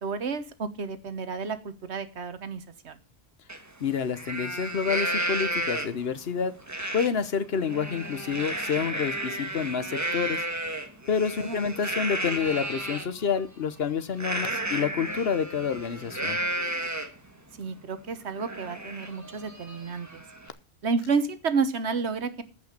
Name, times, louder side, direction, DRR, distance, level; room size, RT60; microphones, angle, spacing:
voice 1, 0.0-3.0 11.4-11.6 17.6-20.2 20.8-22.4, right 5 dB, 85° right, 11 dB, 1.4 m, -30 dB
Livestock farm animals working animals, 3.5-3.6 4.0-6.1 6.7-7.1 7.5-13.1 14.2-17.3 17.7-17.8 18.1-20.5, right 1 dB, 15° right, 1.4 m, -32 dB
voice 2, 3.8-6.5 6.9-10.4 11.1-16.4, left 6 dB, 65° left, 13 dB, 1.2 m, -28 dB
14.5 x 5.6 x 6.7 m, 0.34 s
omnidirectional pair, 1.1 m